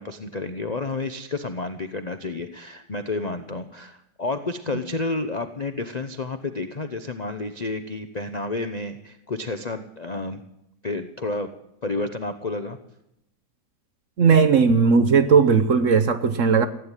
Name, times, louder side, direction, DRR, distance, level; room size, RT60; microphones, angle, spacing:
voice 1, 0.0-10.4 10.8-11.5 11.8-12.8, left 3 dB, 55° left, 8 dB, 0.4 m, -30 dB
voice 2, 14.2-16.7, right 5 dB, 55° right, 10 dB, 1.0 m, -17 dB
15.5 x 9.0 x 9.7 m, 0.81 s
omnidirectional pair, 2.0 m